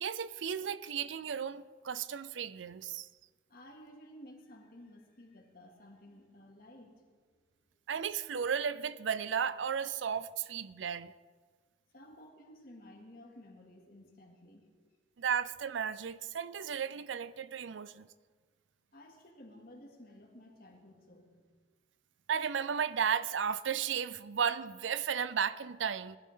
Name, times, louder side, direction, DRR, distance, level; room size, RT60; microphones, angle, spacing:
voice 1, 0.0-3.1 7.9-11.1 15.2-18.1 22.3-26.2, right 7 dB, 90° right, 0.5 m, -34 dB
voice 2, 3.5-7.2 11.9-14.7 18.9-21.5, left 1 dB, 50° left, 2.3 m, -54 dB
19.5 x 12.0 x 3.8 m
head